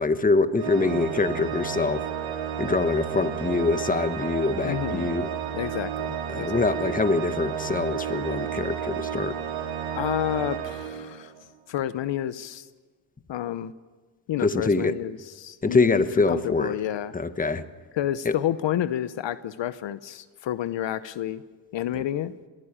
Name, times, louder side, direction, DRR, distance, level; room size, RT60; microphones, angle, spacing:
voice 1, 0.0-2.0 2.6-5.3 6.3-9.4 14.4-15.0 15.6-16.8 17.1-17.6 18.2-18.3 21.9-22.0, left 3 dB, 15° left, 12 dB, 1.1 m, -24 dB
Organ, 0.6-11.5, right 9 dB, 75° right, 3.3 m, -32 dB
voice 2, 4.6-5.1 5.5-6.6 9.9-11.3 11.7-12.7 13.3-13.7 14.3-17.1 17.9-21.4 21.7-22.3, left 11 dB, 60° left, 15 dB, 0.9 m, -30 dB
21.5 x 16.0 x 8.8 m, 1.3 s
cardioid pair, 85°, 49 cm